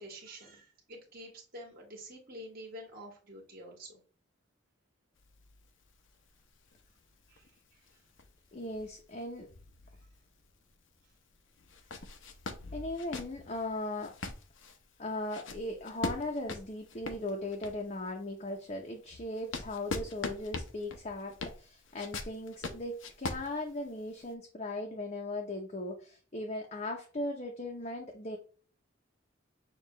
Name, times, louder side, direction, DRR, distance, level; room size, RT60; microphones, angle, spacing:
voice 1, 0.0-4.0 7.3-7.5, equal, 50° right, -2 dB, 1.5 m, -48 dB
sound 1, 5.2-10.5 10.9-11.0 11.6-18.0 18.5-24.3, left 3 dB, 70° left, 0.7 m, -42 dB
voice 2, 8.5-9.5 12.7-14.1 15.0-28.4, left 2 dB, 35° left, 2 dB, 0.6 m, -38 dB
6.5 x 2.4 x 3.0 m, 0.40 s
head